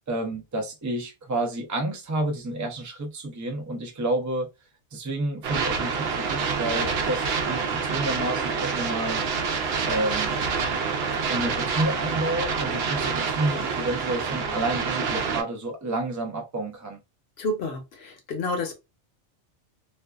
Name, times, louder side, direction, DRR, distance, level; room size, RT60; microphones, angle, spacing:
voice 1, 0.1-4.5 4.9-9.2 9.9-10.3 11.3-17.0, right 1 dB, 30° right, 0.3 m, -30 dB
sound 1, 5.4-15.4, right 5 dB, 65° right, 0.7 m, -27 dB
voice 2, 17.4-18.7, left 2 dB, 60° left, 0.9 m, -29 dB
2.5 x 2.3 x 2.2 m
omnidirectional pair, 1.3 m